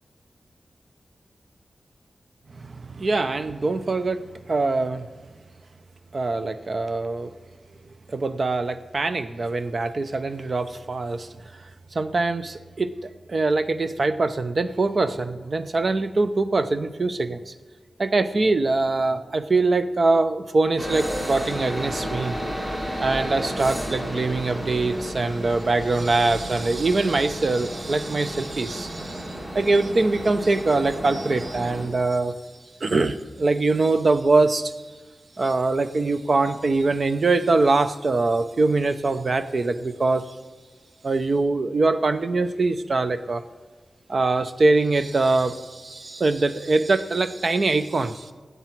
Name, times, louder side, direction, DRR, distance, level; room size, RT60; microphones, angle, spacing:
voice 1, 2.5-4.2 4.5-5.1 6.1-7.3 8.1-11.3 11.9-17.5 18.0-22.4 23.0-32.3 32.8-34.7 35.4-40.3 41.0-43.4 44.1-48.3, right 3 dB, 45° right, 10 dB, 0.7 m, -23 dB
sound 1, 20.8-31.9, equal, 20° right, 2.4 m, -32 dB
19.0 x 8.2 x 4.5 m, 1.4 s
wide cardioid pair, 125°, 0 cm